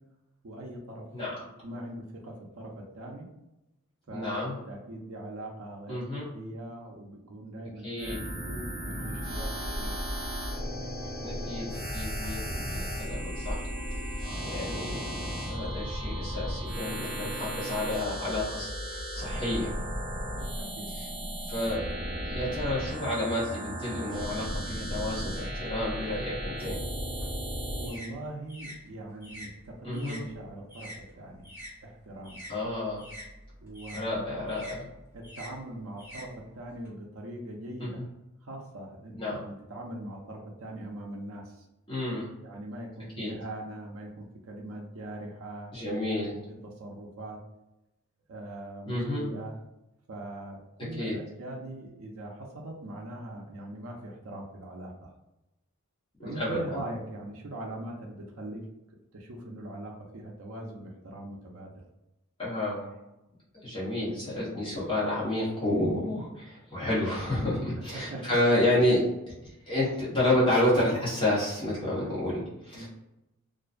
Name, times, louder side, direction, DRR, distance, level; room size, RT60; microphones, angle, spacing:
voice 1, 0.4-1.1 1.6-3.3 4.1-10.0 20.3-21.3 27.7-31.4 31.8-32.4 33.6-34.3 35.1-38.0 38.4-41.6 42.4-46.1 46.6-47.4 48.3-49.5 50.1-55.1 56.2-58.6 59.1-61.7 67.8-68.4 72.7-72.9, right 1 dB, 70° right, 0 dB, 0.5 m, -41 dB
voice 2, 1.1-1.4 4.1-4.6 5.9-6.3 7.8-8.2 11.2-13.7 14.4-19.7 20.9-21.1 21.5-21.8 22.3-26.8 29.8-30.2 32.5-33.0 33.9-34.9 37.8-38.1 39.2-39.4 41.9-42.3 43.2-43.3 45.7-46.4 48.9-49.3 50.9-51.2 56.2-56.9 62.4-62.9 63.6-69.0 69.7-72.9, left 1 dB, 20° left, -8 dB, 0.9 m, -30 dB
sound 1, 8.0-16.6, left 1 dB, 85° left, 1.0 m, -42 dB
sound 2, 8.0-28.0, equal, 45° right, 0.9 m, -35 dB
sound 3, 27.0-31.7 32.0-36.9, equal, 10° right, 0.7 m, -46 dB
2.5 x 2.2 x 2.4 m, 0.92 s
head